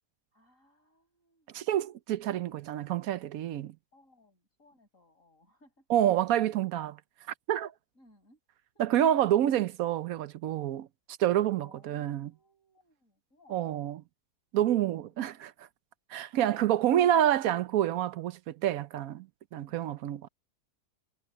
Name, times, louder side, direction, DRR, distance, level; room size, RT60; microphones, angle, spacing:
voice 1, 0.3-1.6 3.9-5.9 7.9-8.4 8.7-9.2 11.6-13.8 14.9-15.5 19.7-19.8, left 2 dB, 50° left, 6.1 m, -63 dB
voice 2, 1.5-3.7 5.9-7.0 7.5-7.7 8.8-10.9 11.2-12.3 13.5-14.0 14.5-15.7 16.1-19.3 19.5-20.3, right 11 dB, 65° right, 1.0 m, -28 dB
omnidirectional pair, 1.7 m